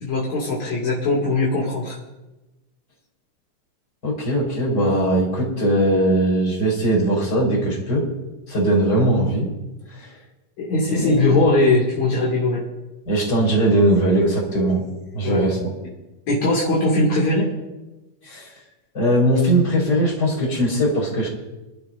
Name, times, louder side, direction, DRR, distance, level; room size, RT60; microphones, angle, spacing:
voice 1, 0.0-2.0 10.6-12.6 15.2-15.4 16.3-17.5, left 2 dB, 65° left, -5 dB, 3.5 m, -20 dB
voice 2, 4.0-8.1 8.5-9.5 10.0-10.1 10.9-11.2 13.1-14.8 15.1-15.7 18.3-18.5 18.9-21.3, right 1 dB, 35° left, -2 dB, 4.9 m, -20 dB
27.5 x 11.5 x 2.6 m, 1.1 s
omnidirectional pair, 3.4 m